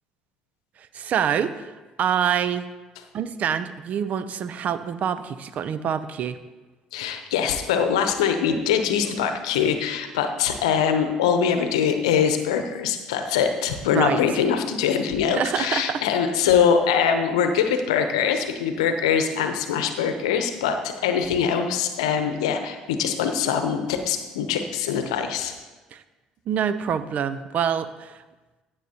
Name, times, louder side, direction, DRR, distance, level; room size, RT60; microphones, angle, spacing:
voice 1, 0.9-1.7 2.0-2.7 3.1-6.4 13.9-14.2 15.3-16.0 25.9-26.0 26.5-28.2, right 8 dB, 55° right, 13 dB, 0.6 m, -26 dB
voice 2, 6.9-25.5, left 7 dB, 85° left, 7 dB, 0.8 m, -23 dB
15.0 x 8.0 x 2.9 m, 1.2 s
hypercardioid pair, 60°, 3 cm